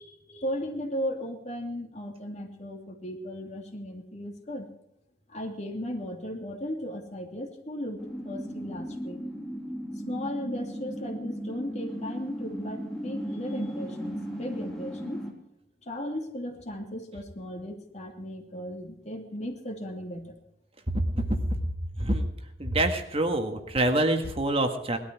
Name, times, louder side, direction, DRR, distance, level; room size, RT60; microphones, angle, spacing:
voice 1, 0.0-4.7 5.3-9.2 10.1-15.2 15.8-20.4, equal, 40° left, 3 dB, 2.7 m, -36 dB
sound 1, 8.0-15.3, equal, 5° left, 3.3 m, -36 dB
voice 2, 22.6-25.0, right 1 dB, 35° right, 5 dB, 1.7 m, -26 dB
19.5 x 12.5 x 4.7 m, 0.81 s
head